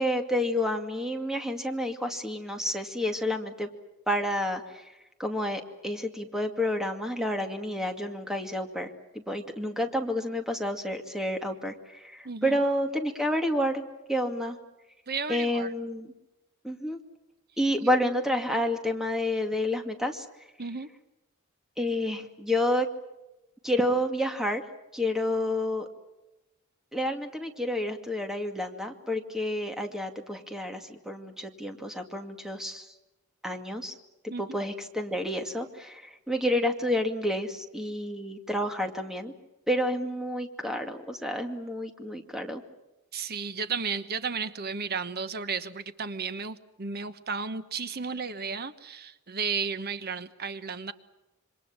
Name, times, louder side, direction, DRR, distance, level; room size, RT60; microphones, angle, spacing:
voice 1, 0.0-3.7 4.1-4.6 5.2-13.8 14.1-14.6 15.3-16.1 16.6-17.0 17.6-20.3 21.8-22.9 23.6-24.6 24.9-25.9 26.9-32.9 33.4-33.9 34.4-39.3 39.7-42.6, left 1 dB, ahead, 5 dB, 2.3 m, -29 dB
voice 2, 12.2-12.6 15.1-15.7 20.6-20.9 34.3-34.6 43.1-50.9, right 5 dB, 45° right, 12 dB, 1.2 m, -33 dB
27.5 x 25.0 x 7.4 m, 0.98 s
head